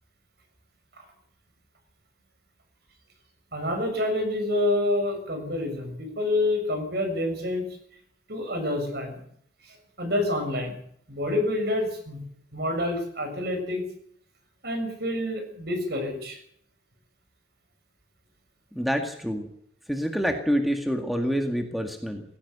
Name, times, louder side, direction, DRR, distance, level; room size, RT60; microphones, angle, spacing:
voice 1, 3.5-7.6 8.3-9.2 9.6-10.7 11.1-12.2 12.5-13.8 14.6-16.4, left 1 dB, 55° right, 5 dB, 6.7 m, -27 dB
voice 2, 18.7-19.5 19.9-22.2, equal, ahead, 4 dB, 1.9 m, -27 dB
18.5 x 17.0 x 8.2 m, 0.67 s
head